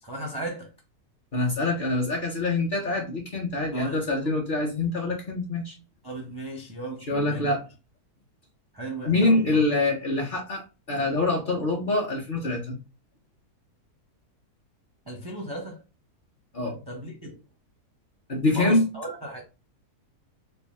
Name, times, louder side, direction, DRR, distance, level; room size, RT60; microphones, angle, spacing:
voice 1, 0.0-0.7 3.7-4.3 6.0-7.6 8.7-9.6 15.1-15.8 16.9-17.4 18.5-19.4, right 1 dB, 30° right, 0.4 m, -36 dB
voice 2, 1.3-5.8 7.1-7.6 9.1-12.8 16.5-16.8 18.3-18.8, left 2 dB, 45° left, 0.7 m, -25 dB
3.4 x 2.2 x 4.0 m
omnidirectional pair, 1.7 m